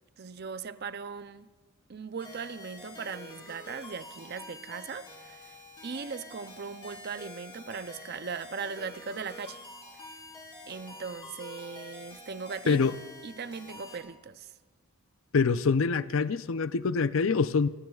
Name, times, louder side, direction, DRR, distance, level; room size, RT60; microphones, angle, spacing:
voice 1, 0.2-1.5 1.9-5.6 5.8-9.6 10.7-12.8 13.2-14.5, right 5 dB, 45° right, 0.5 m, -39 dB
sound 1, 2.2-14.0, left 2 dB, 20° left, 3.0 m, -47 dB
voice 2, 12.7-13.0 15.3-17.7, left 4 dB, 60° left, 0.5 m, -25 dB
29.0 x 19.5 x 2.4 m
head